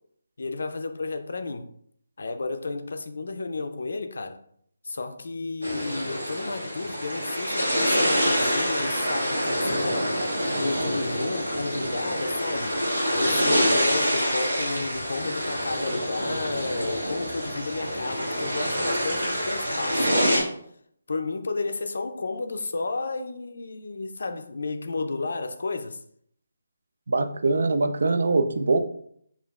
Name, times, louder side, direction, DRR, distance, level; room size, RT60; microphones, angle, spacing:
voice 1, 0.4-1.7 2.2-4.4 4.8-10.1 10.6-12.8 13.1-20.5 21.1-26.0, left 3 dB, 65° left, 0.4 m, -32 dB
sound 1, 5.6-20.4, equal, 90° right, 1.2 m, -26 dB
voice 2, 27.1-28.8, right 3 dB, 65° right, 0.4 m, -23 dB
5.1 x 2.5 x 2.3 m
figure-of-eight pair, 155°, 0 cm